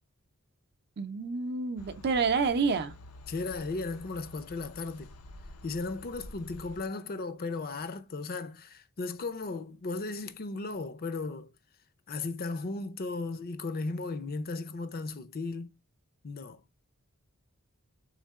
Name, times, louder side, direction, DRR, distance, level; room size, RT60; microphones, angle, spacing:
voice 1, 1.0-2.9, right 4 dB, 50° right, 0.6 m, -28 dB
sound 1, 1.8-6.8, left 1 dB, 80° left, 0.7 m, -49 dB
voice 2, 3.3-5.1 5.6-11.5 12.1-15.7 16.2-16.6, left 3 dB, 45° left, 0.5 m, -36 dB
3.6 x 3.2 x 3.5 m
head